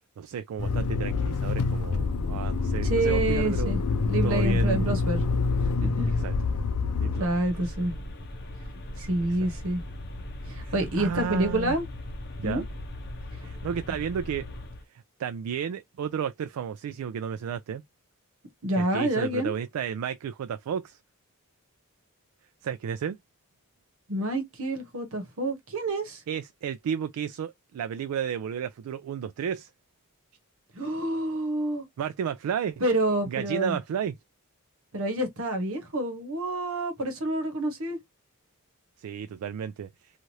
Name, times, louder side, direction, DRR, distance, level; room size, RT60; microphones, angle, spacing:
voice 1, 0.2-3.7 4.1-4.9 6.2-6.3 7.0-7.7 9.2-9.3 10.6-11.8 12.4-12.6 13.4-14.5 14.9-17.8 18.8-21.0 22.6-23.2 26.3-29.7 32.0-32.8 33.3-34.1 39.0-39.9, right 8 dB, 85° right, 0.3 m, -32 dB
Motor vehicle (road), 0.6-7.2, left 4 dB, 85° left, 0.5 m, -26 dB
voice 2, 2.8-5.2 5.6-6.1 7.2-7.9 9.0-9.8 10.5-11.9 12.4-12.6 18.6-19.5 24.1-26.2 30.7-31.9 32.8-33.8 34.9-38.0, right 1 dB, 65° right, 1.0 m, -28 dB
sound 1, 7.1-14.8, left 1 dB, 50° left, 0.7 m, -39 dB
3.0 x 2.4 x 2.6 m
head